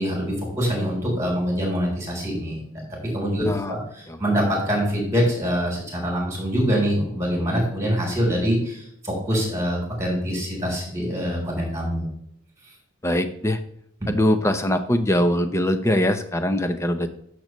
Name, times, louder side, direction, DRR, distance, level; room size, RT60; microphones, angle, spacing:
voice 1, 0.0-2.8 3.1-12.1 14.0-14.1, equal, 15° right, -3 dB, 3.7 m, -24 dB
voice 2, 3.4-3.8 4.1-4.2 13.0-13.6 14.1-17.1, left 1 dB, 15° left, 8 dB, 0.7 m, -22 dB
10.5 x 6.6 x 3.1 m, 0.71 s
head